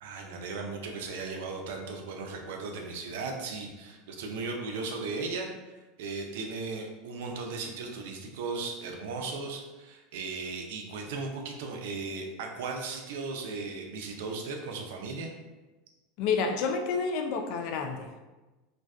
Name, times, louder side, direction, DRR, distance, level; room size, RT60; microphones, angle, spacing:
voice 1, 0.0-15.3, right 4 dB, 75° right, 2 dB, 0.4 m, -37 dB
voice 2, 16.2-18.2, left 5 dB, 60° left, 5 dB, 0.3 m, -29 dB
2.5 x 2.2 x 2.2 m, 1.1 s
hypercardioid pair, 95°, 0 cm